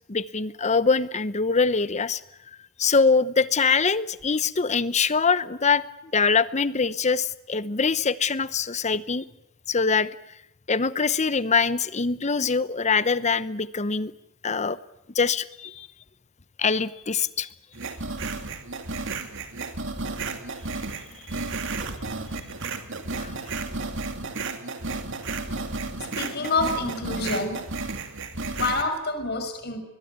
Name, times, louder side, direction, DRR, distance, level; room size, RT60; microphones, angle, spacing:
voice 1, 0.1-2.2 2.8-5.8 6.1-9.2 9.7-10.1 10.7-14.1 14.4-14.8 15.1-15.9 16.6-17.5 23.2-23.3, left 5 dB, 35° left, 16 dB, 0.9 m, -23 dB
sound 1, 17.8-28.8, right 3 dB, 60° right, 2.5 m, -33 dB
voice 2, 26.0-27.6 28.5-29.8, left 3 dB, 50° left, 8 dB, 5.5 m, -27 dB
22.0 x 21.5 x 9.5 m, 0.79 s
head